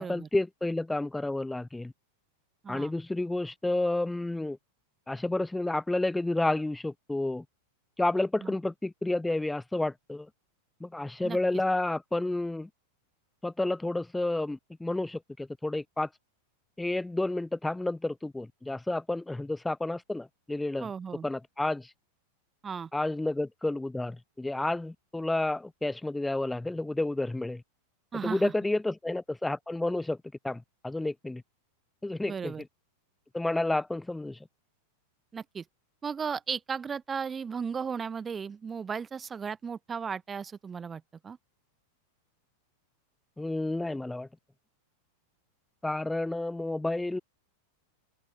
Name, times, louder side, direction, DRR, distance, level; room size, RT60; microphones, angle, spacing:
voice 1, 0.0-1.9 2.7-4.6 5.1-7.4 8.0-10.3 10.8-12.7 13.4-16.1 16.8-20.9 21.2-21.9 22.9-27.6 28.2-30.2 30.4-31.4 32.0-32.5 33.3-34.4 43.4-44.3 45.8-47.2, left 2 dB, 5° left, 0.4 m, -30 dB
voice 2, 11.2-11.6 20.8-21.3 22.6-22.9 28.1-28.5 32.2-32.6 35.3-35.6 36.0-41.4, right 6 dB, 20° right, 1.1 m, -35 dB
open air
figure-of-eight pair, 90°, 0 cm